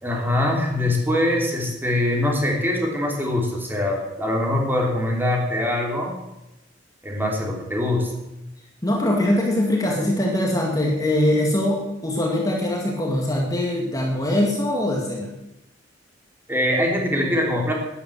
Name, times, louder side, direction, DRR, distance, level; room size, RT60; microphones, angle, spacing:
voice 1, 0.0-6.2 7.0-8.1 16.5-17.7, left 1 dB, 10° right, 0 dB, 3.3 m, -23 dB
voice 2, 8.8-15.3, left 1 dB, 20° left, -1 dB, 2.2 m, -22 dB
12.0 x 10.5 x 7.9 m, 0.92 s
head